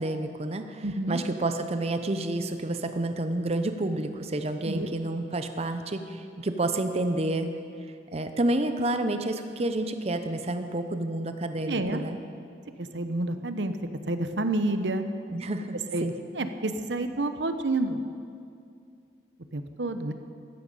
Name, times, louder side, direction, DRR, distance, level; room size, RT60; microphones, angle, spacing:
voice 1, 0.0-7.5 8.1-12.2 15.3-16.1, right 2 dB, 35° right, 8 dB, 0.7 m, -29 dB
voice 2, 0.8-1.2 4.7-4.9 11.6-12.0 12.8-13.7 14.1-15.1 15.9-16.0 16.4-18.0 19.5-20.1, right 2 dB, 80° right, 9 dB, 0.9 m, -29 dB
15.0 x 14.0 x 5.4 m, 2.4 s
head